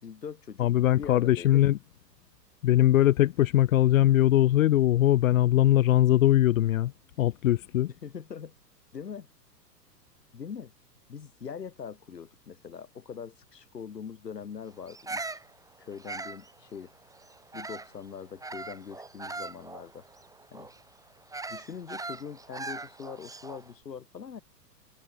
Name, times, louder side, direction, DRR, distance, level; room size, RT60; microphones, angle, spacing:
voice 1, 0.0-0.7 1.0-1.6 8.0-8.5 8.9-9.3 10.3-10.7 11.1-15.2 15.8-16.9 17.5-20.1 20.5-20.7 21.5-24.4, left 7 dB, 70° left, 7.8 m, -42 dB
voice 2, 0.6-1.8 2.6-6.9 7.2-7.9, left 13 dB, 55° left, 1.0 m, -21 dB
Bird vocalization bird call bird song, 14.9-18.0 18.4-23.7, right 3 dB, 5° right, 5.4 m, -40 dB
figure-of-eight pair, 105°, 50 cm